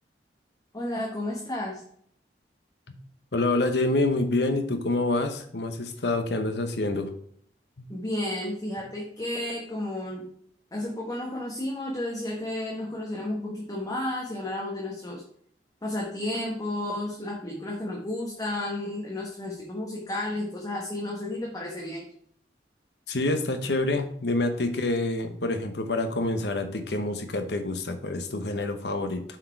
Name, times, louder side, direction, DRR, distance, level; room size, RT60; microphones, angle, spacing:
voice 1, 0.7-1.8 7.9-10.3 10.7-15.2 15.8-22.1, left 1 dB, 20° left, -3 dB, 1.3 m, -32 dB
voice 2, 3.3-7.1 7.8-7.9 23.1-29.2, left 2 dB, 70° left, 7 dB, 1.0 m, -27 dB
7.5 x 4.6 x 4.6 m, 0.63 s
head